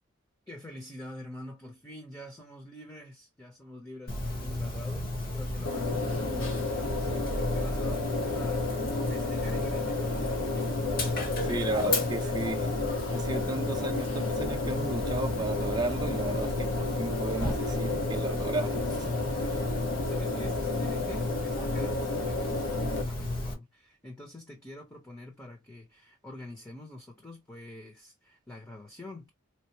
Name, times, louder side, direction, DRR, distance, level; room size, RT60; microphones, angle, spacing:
voice 1, 0.5-10.6 19.8-29.3, left 1 dB, 15° left, 0.7 m, -46 dB
Dog, 4.1-23.5, left 1 dB, 45° left, 1.1 m, -33 dB
sound 1, 5.7-23.0, left 3 dB, 70° left, 0.8 m, -33 dB
voice 2, 11.4-12.7 13.1-19.7, right 2 dB, 20° right, 0.5 m, -34 dB
4.4 x 2.0 x 2.9 m
head